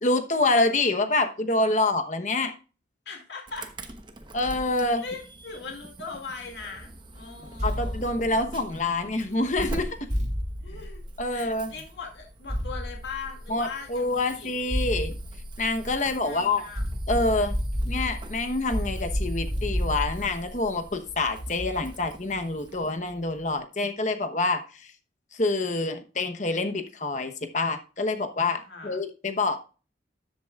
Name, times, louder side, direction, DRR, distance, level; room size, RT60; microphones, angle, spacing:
voice 1, 0.0-2.5 4.3-5.0 7.6-10.1 11.2-11.7 13.5-15.1 15.6-16.6 17.1-17.6 17.9-24.9 25.3-29.6, left 2 dB, 40° left, 1.0 m, -26 dB
voice 2, 3.1-3.7 5.0-8.1 10.6-11.0 11.3-14.5 16.0-16.8 28.6-29.0, left 4 dB, 75° left, 2.3 m, -40 dB
Insect / Alarm, 3.5-22.9, right 1 dB, 25° right, 0.9 m, -44 dB
sound 1, 7.6-9.1 10.1-11.7 12.5-13.9 14.7-16.3 16.8-22.0, equal, 40° right, 3.7 m, -32 dB
13.0 x 7.9 x 2.4 m
head